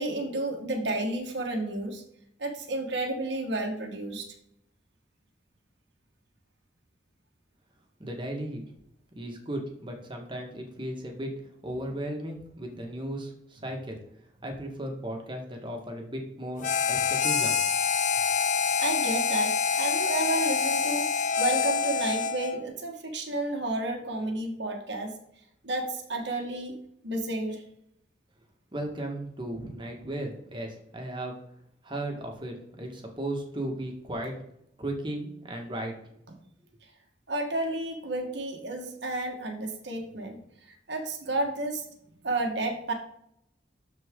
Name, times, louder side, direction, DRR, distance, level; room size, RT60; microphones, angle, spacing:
voice 1, 0.0-2.0 2.4-4.3 18.8-25.1 25.6-26.8 27.0-27.6 37.3-40.4 40.9-41.8 42.2-42.9, right 2 dB, 70° right, 2 dB, 1.6 m, -31 dB
voice 2, 8.0-8.6 9.1-11.3 11.6-14.0 14.4-17.6 28.7-31.4 31.8-34.4 34.8-35.9, right 1 dB, 25° right, 2 dB, 1.7 m, -35 dB
Harmonica, 16.6-22.6, left 6 dB, 40° left, 0.6 m, -26 dB
13.0 x 4.5 x 3.8 m, 0.73 s
head